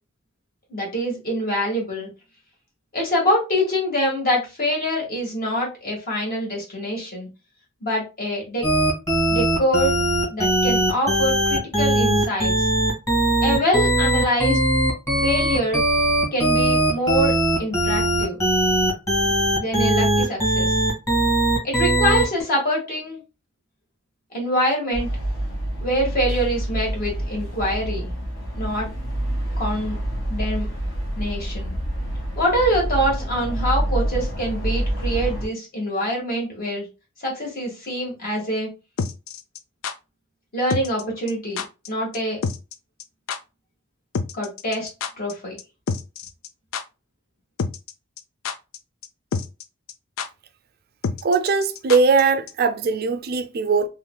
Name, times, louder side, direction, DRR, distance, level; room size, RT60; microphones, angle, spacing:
voice 1, 0.7-2.1 2.9-7.3 7.8-8.6 9.3-9.9 10.3-12.7 13.4-14.6 15.2-15.8 16.3-18.4 19.6-20.8 21.6-23.2 24.3-25.1 25.8-28.1 28.5-28.9 29.6-30.0 30.3-30.7 31.1-31.7 32.3-36.9 37.2-38.7 40.5-41.6 41.9-42.4 44.3-44.9 45.2-45.6, equal, 50° left, 1.6 m, -24 dB
sound 1, 8.6-22.4, right 1 dB, 15° left, 1.5 m, -20 dB
sound 2, 24.9-35.5, right 1 dB, 65° left, 1.6 m, -27 dB
sound 3, 39.0-39.9 40.7-41.0 41.3-41.4 41.6-41.9 42.1-42.2 42.4-42.7 43.0-43.1 43.3-43.4 44.1-45.3 45.6-45.7 45.9-46.5 46.7-46.8 47.6-47.9 48.2-48.8 49.0-49.1 49.3-49.6 49.9-50.0 50.2-50.3 51.0-52.2 52.5-52.6, left 5 dB, 90° left, 0.4 m, -27 dB
voice 2, 51.2-53.9, right 4 dB, 50° right, 0.4 m, -20 dB
3.8 x 3.1 x 2.2 m
head